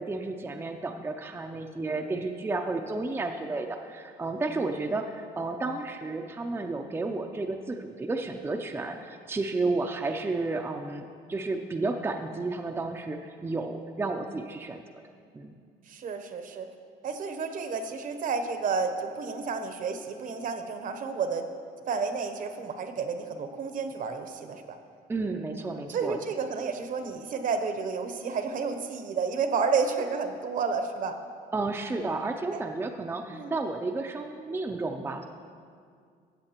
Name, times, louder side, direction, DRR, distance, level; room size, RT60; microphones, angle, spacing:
voice 1, 0.0-14.8 15.3-15.6 25.1-26.2 31.5-35.2, right 3 dB, 15° right, 3 dB, 0.5 m, -32 dB
voice 2, 15.9-16.7 17.0-21.5 21.9-24.8 25.9-31.1 33.3-33.6, right 5 dB, 50° right, 7 dB, 0.8 m, -31 dB
14.5 x 8.2 x 2.9 m, 2.2 s
cardioid pair, 110°, 17 cm